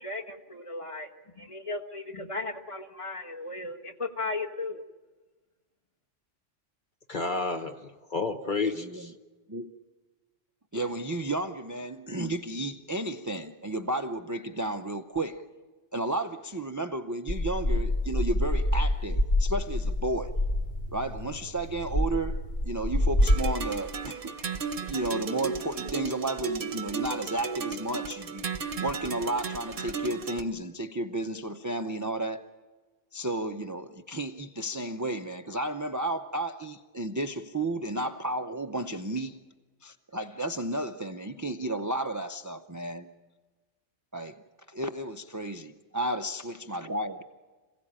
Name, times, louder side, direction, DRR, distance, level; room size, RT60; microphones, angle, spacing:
voice 1, 0.0-1.1 1.4-4.8, left 3 dB, 25° left, 1.3 m, -36 dB
voice 2, 7.1-9.1, left 3 dB, 45° left, 1.0 m, -31 dB
voice 3, 8.8-9.1 9.5-9.7 10.7-15.4 15.9-20.3 20.9-32.4 33.1-39.4 39.8-43.1 44.1-44.4 44.7-47.2, right 1 dB, 25° right, 0.5 m, -33 dB
sound 1, 17.3-23.4, left 1 dB, 60° left, 2.2 m, -27 dB
sound 2, 23.2-30.4, right 5 dB, 50° right, 1.0 m, -35 dB
26.5 x 16.5 x 8.8 m
omnidirectional pair, 1.2 m